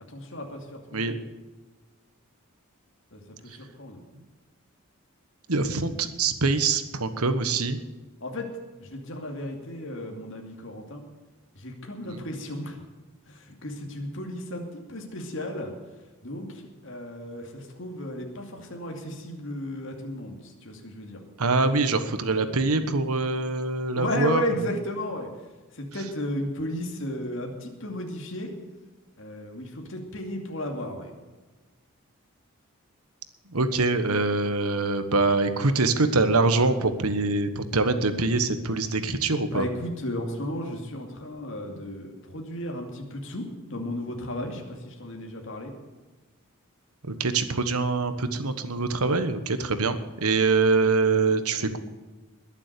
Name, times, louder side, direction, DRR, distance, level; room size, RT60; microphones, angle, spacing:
voice 1, 0.1-1.2 3.1-4.0 8.2-8.5 8.8-11.0 11.5-12.8 13.3-15.7 16.2-21.2 23.9-25.3 25.7-28.5 29.2-31.1 39.5-45.7, left 1 dB, 60° left, 2 dB, 2.5 m, -34 dB
voice 2, 5.5-7.8 12.0-12.2 21.4-24.4 33.5-39.7 47.2-51.8, right 3 dB, 85° right, 10 dB, 1.4 m, -24 dB
21.0 x 7.4 x 6.9 m, 1.2 s
head